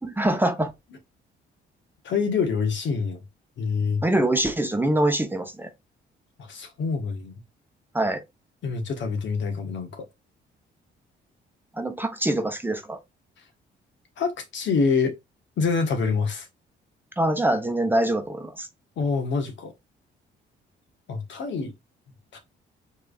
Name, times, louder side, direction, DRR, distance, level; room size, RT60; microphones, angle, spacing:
voice 1, 0.0-0.7 4.0-5.7 7.9-8.2 11.7-13.0 17.2-18.7, right 1 dB, 10° right, 0.9 m, -24 dB
voice 2, 2.0-3.2 3.6-4.0 6.5-7.3 8.6-10.1 14.2-15.2 15.6-16.5 19.0-19.7 21.1-21.7 22.3-22.4, left 5 dB, 65° left, 1.4 m, -26 dB
4.5 x 3.3 x 2.4 m
cardioid pair, 90°, 20 cm